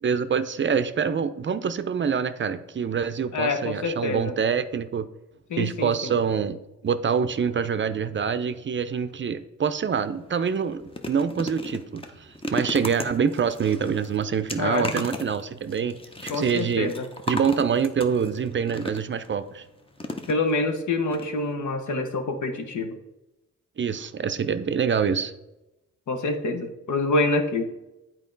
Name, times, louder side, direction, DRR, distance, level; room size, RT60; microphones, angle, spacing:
voice 1, 0.0-5.1 5.6-6.6 6.8-16.9 17.3-19.6 23.8-25.3, right 6 dB, 40° right, 11 dB, 0.5 m, -26 dB
voice 2, 3.3-4.4 5.5-6.1 14.6-14.9 16.3-17.1 20.3-23.0 26.1-27.6, left 2 dB, 75° left, 6 dB, 1.0 m, -26 dB
sound 1, 9.9-10.1 10.5-19.3 20.0-20.8 21.1-21.2 21.5-21.6, left 1 dB, 20° left, 0.7 m, -35 dB
8.3 x 4.5 x 3.9 m, 0.95 s
cardioid pair, 85°, 30 cm